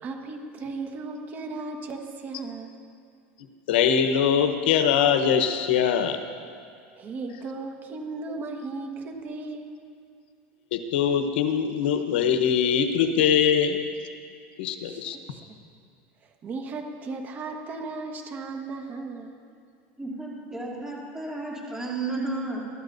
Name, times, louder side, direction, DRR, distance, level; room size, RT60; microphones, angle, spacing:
voice 1, 0.0-2.7 7.0-9.8 14.8-15.4 16.4-19.5, right 3 dB, 35° right, 4 dB, 1.4 m, -36 dB
voice 2, 3.7-6.2 10.7-13.8 14.6-15.2, left 8 dB, 85° left, 6 dB, 1.0 m, -22 dB
voice 3, 20.0-22.6, right 2 dB, 10° right, -5 dB, 2.9 m, -32 dB
23.0 x 13.0 x 2.7 m, 2.3 s
supercardioid pair, 135°, 6 cm